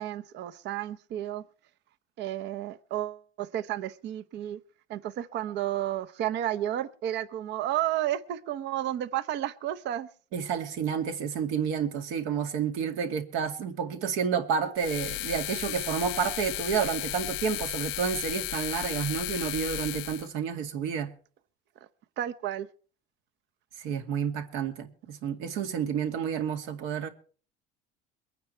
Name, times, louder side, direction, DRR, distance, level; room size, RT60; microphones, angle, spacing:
voice 1, 0.0-1.4 2.2-4.6 4.9-10.1 22.2-22.7, right 12 dB, 55° right, 0.9 m, -32 dB
voice 2, 10.3-21.1 23.8-27.1, right 7 dB, 75° right, 2.3 m, -30 dB
sound 1, 14.8-20.3, left 18 dB, 75° left, 0.7 m, -34 dB
23.0 x 9.4 x 4.5 m
cardioid pair, 125°, 21 cm